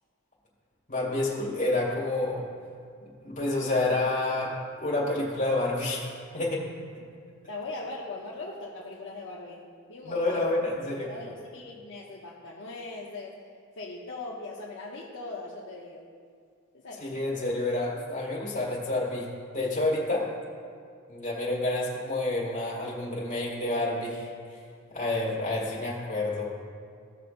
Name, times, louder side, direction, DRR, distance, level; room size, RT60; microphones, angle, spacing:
voice 1, 0.9-2.4 3.0-6.1 6.3-6.7 10.0-11.1 17.0-19.3 19.5-20.3 21.1-24.6 24.9-26.5, left 2 dB, 35° left, -4 dB, 2.3 m, -29 dB
voice 2, 7.5-9.6 9.9-10.5 11.0-13.4 13.8-16.1 16.7-17.2, left 2 dB, 60° left, -4 dB, 0.9 m, -40 dB
15.5 x 6.4 x 2.6 m, 2.3 s
head